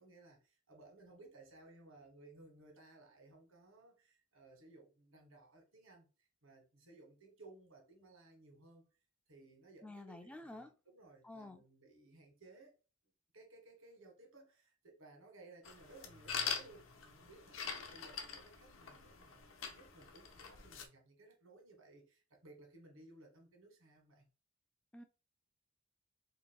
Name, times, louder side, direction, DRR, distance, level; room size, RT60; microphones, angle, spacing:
voice 1, 0.0-8.9 9.3-12.7 13.3-24.3, right 2 dB, 85° right, 1.4 m, -60 dB
voice 2, 9.8-10.7 11.2-11.6 24.9-25.0, left 2 dB, 5° left, 0.3 m, -50 dB
sound 1, 15.6-20.9, left 6 dB, 75° left, 0.8 m, -44 dB
2.9 x 2.8 x 4.4 m
head